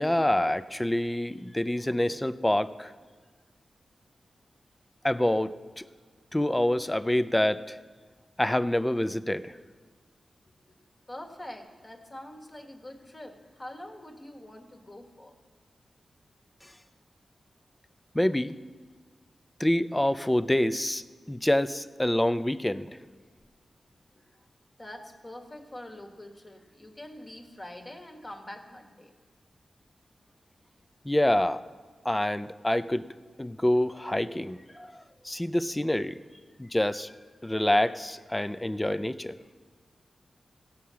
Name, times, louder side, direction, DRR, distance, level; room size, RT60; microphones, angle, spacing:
voice 1, 0.0-2.9 5.0-5.8 6.3-7.8 8.4-9.5 18.1-18.5 19.6-22.9 31.0-31.6 32.0-33.1 33.4-36.2 36.6-37.1 37.4-39.4, left 1 dB, 15° left, 14 dB, 0.5 m, -26 dB
voice 2, 11.1-15.3 24.1-24.4 24.8-29.1, left 1 dB, 30° left, 4 dB, 1.5 m, -44 dB
16.5 x 5.7 x 7.5 m, 1.5 s
cardioid pair, 65°, 0 cm